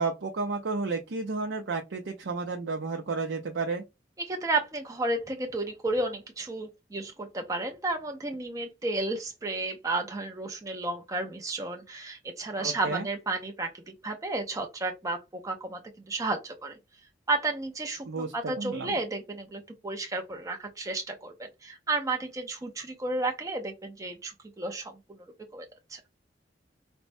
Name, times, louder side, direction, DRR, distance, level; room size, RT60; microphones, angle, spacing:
voice 1, 0.0-3.8 12.6-13.1 18.1-19.0, right 3 dB, 85° right, 0.5 m, -32 dB
voice 2, 4.2-15.8 16.1-16.8 17.3-21.3 21.6-24.9 25.5-26.0, right 2 dB, 20° right, 0.4 m, -32 dB
4.3 x 2.1 x 2.5 m
head